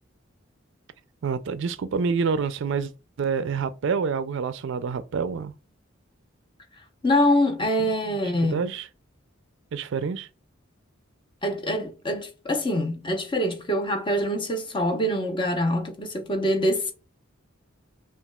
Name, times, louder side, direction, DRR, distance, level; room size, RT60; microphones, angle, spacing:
voice 1, 1.2-2.9 3.2-5.5 8.1-8.9 9.7-10.3, right 5 dB, 65° right, 0.4 m, -27 dB
voice 2, 7.0-8.6 11.4-16.9, equal, 25° left, 0.8 m, -24 dB
5.8 x 2.4 x 2.3 m
head